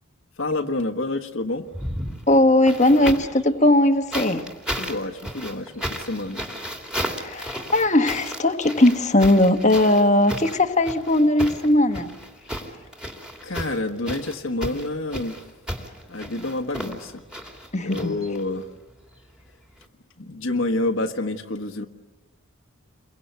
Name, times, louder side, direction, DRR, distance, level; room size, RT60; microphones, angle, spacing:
voice 1, 0.4-1.6 4.8-6.5 13.4-15.4 16.1-17.2 17.8-18.7 20.2-21.8, left 2 dB, 60° left, 5 dB, 1.5 m, -28 dB
sound 1, 1.7-3.4 4.1-18.6 19.8-19.9, equal, 5° right, 2.7 m, -34 dB
voice 2, 2.3-4.5 7.2-12.1 17.7-18.1, left 1 dB, 30° left, 7 dB, 1.4 m, -19 dB
29.5 x 23.0 x 8.1 m, 1.2 s
head